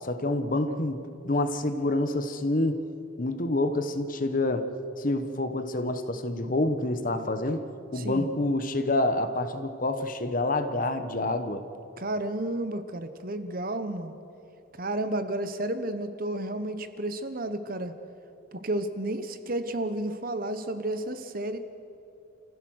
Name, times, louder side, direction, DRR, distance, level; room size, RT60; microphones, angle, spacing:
voice 1, 0.0-2.8 3.2-4.7 5.0-7.6 7.9-11.6, left 2 dB, 40° left, 9 dB, 1.1 m, -27 dB
voice 2, 7.9-8.3 12.0-14.1 14.8-17.9 18.5-21.6, right 1 dB, 40° right, 10 dB, 1.0 m, -32 dB
29.0 x 15.5 x 6.5 m, 2.8 s
head